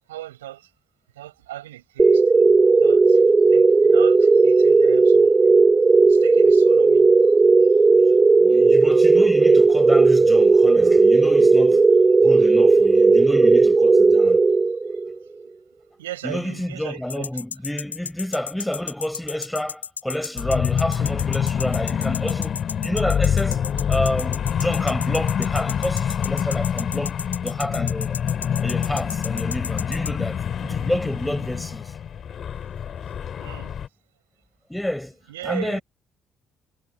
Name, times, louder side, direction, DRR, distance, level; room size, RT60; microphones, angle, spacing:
voice 1, 0.1-0.7 1.2-2.3 2.6-3.2 3.5-5.3 6.0-7.3 7.6-8.3 12.2-12.3 16.0-17.4 33.4-33.8 35.3-35.8, right 14 dB, 80° right, 7.0 m, -38 dB
sound 1, 2.0-15.1, right 3 dB, 25° right, 0.4 m, -15 dB
voice 2, 8.4-11.9 12.2-14.4 16.2-23.6 23.9-27.1 27.4-28.2 28.6-31.9 34.7-35.1 35.4-35.8, left 1 dB, 5° left, 5.1 m, -29 dB
sound 2, 17.1-30.1, left 6 dB, 85° left, 0.6 m, -33 dB
sound 3, 20.4-33.9, left 8 dB, 50° left, 3.3 m, -26 dB
figure-of-eight pair, 45°, 0 cm